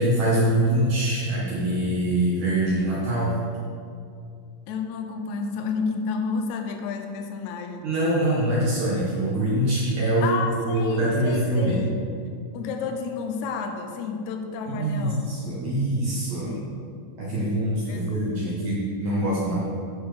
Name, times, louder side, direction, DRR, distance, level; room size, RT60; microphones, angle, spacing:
voice 1, 0.0-3.3 7.8-11.9 14.7-16.6 17.2-19.6, right 1 dB, 65° right, -8 dB, 2.7 m, -24 dB
voice 2, 4.7-7.9 10.2-12.0 12.5-15.3 16.4-16.9 17.4-18.7, left 5 dB, 75° left, 4 dB, 1.9 m, -31 dB
12.5 x 4.3 x 5.1 m, 2.4 s
omnidirectional pair, 3.7 m